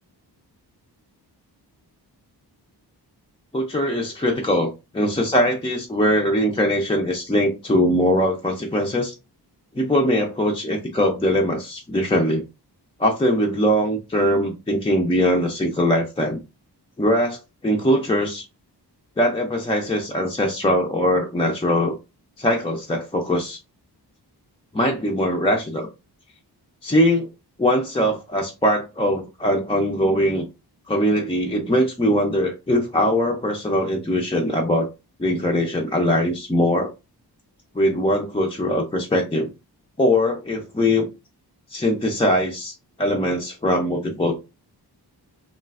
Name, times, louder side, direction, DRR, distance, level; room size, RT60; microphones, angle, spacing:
voice 1, 3.5-9.1 9.7-12.4 13.0-16.4 17.0-18.4 19.2-22.0 22.4-23.6 24.7-25.9 26.8-27.3 27.6-30.5 30.9-34.9 35.2-36.9 37.7-39.5 40.0-41.1 41.7-44.3, equal, 15° left, 0.4 m, -21 dB
3.2 x 2.4 x 2.3 m
wide cardioid pair, 135°, 40 cm